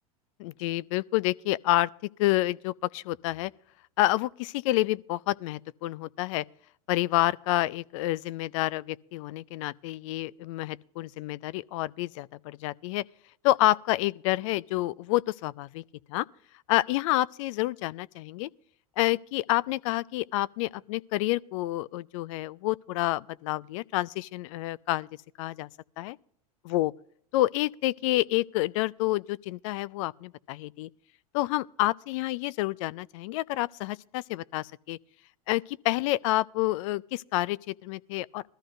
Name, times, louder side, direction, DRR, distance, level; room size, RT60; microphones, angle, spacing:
voice 1, 0.4-3.5 4.0-6.4 6.9-13.0 13.4-15.8 16.1-16.3 16.7-18.5 19.0-25.1 25.4-25.7 26.0-26.2 26.6-26.9 27.3-30.9 31.3-35.0 35.5-38.5, left 17 dB, 60° left, 0.4 m, -28 dB
20.0 x 13.5 x 2.6 m
hypercardioid pair, 90°, 19 cm